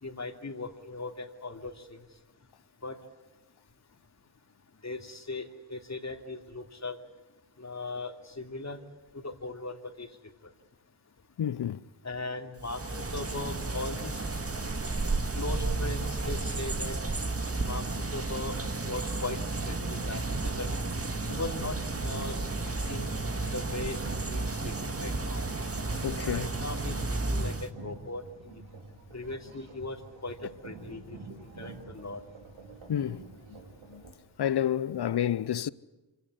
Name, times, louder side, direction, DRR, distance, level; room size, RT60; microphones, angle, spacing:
voice 1, 0.0-2.0 2.8-3.0 4.8-7.0 7.6-8.8 9.2-10.1 12.0-14.2 15.3-16.9 17.7-18.6 18.8-19.4 19.7-20.7 21.3-23.1 23.5-24.0 24.3-25.4 26.2-26.9 27.3-28.6 29.1-30.0 30.2-31.2 31.6-32.2, left 2 dB, 35° left, 3.0 m, -38 dB
voice 2, 11.4-11.8 26.0-26.5 32.9-33.2 33.5-33.6 33.9-34.0 34.4-35.7, left 10 dB, 60° left, 0.8 m, -29 dB
sound 1, 12.6-27.7, right 3 dB, 30° right, 1.9 m, -32 dB
sound 2, 19.7-34.1, right 3 dB, 85° right, 2.8 m, -47 dB
25.5 x 17.5 x 9.8 m
cardioid pair, 40°, 45 cm